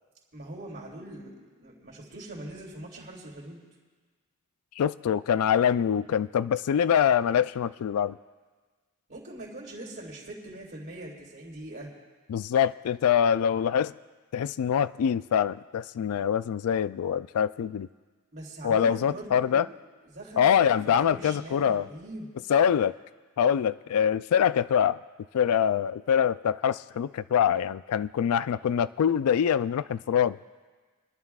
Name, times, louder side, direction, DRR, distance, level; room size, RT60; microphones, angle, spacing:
voice 1, 0.3-3.6 9.1-11.9 18.3-19.7 20.0-22.3, right 1 dB, 50° right, -3 dB, 3.2 m, -42 dB
voice 2, 4.8-8.2 12.3-13.9 14.3-17.9 18.6-19.7 20.4-21.9 22.5-22.9 23.4-25.0 25.3-30.4, left 8 dB, 70° left, 15 dB, 0.3 m, -24 dB
29.5 x 11.0 x 2.4 m, 1.4 s
head